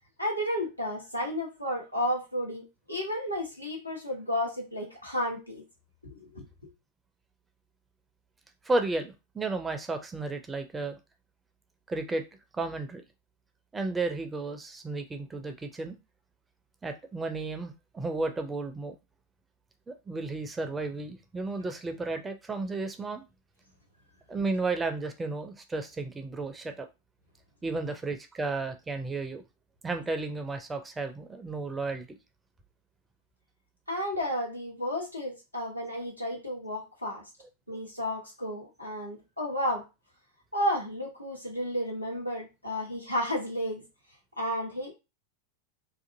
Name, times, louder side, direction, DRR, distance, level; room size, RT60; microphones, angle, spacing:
voice 1, 0.2-5.6 6.0-6.4 33.9-37.2 37.7-39.8 40.5-43.8 44.4-44.9, equal, 90° left, -1 dB, 0.9 m, -32 dB
voice 2, 8.6-11.0 11.9-12.2 12.5-13.0 13.7-16.0 16.8-19.0 19.9-23.2 24.3-26.9 27.6-29.4 29.8-32.1, right 3 dB, 15° right, 7 dB, 0.4 m, -33 dB
2.6 x 2.5 x 2.5 m, 0.26 s
figure-of-eight pair, 90°, 0 cm